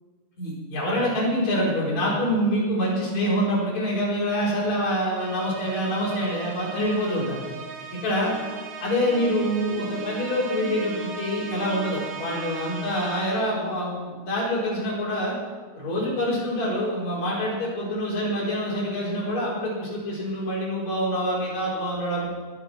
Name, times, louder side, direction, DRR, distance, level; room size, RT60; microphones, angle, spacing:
voice 1, 0.4-7.4 8.0-8.3 8.8-15.3 15.8-22.3, equal, 45° left, -6 dB, 5.8 m, -26 dB
sound 1, 5.2-13.7, right 5 dB, 75° right, 3.7 m, -37 dB
20.5 x 7.9 x 6.0 m, 1.5 s
omnidirectional pair, 4.6 m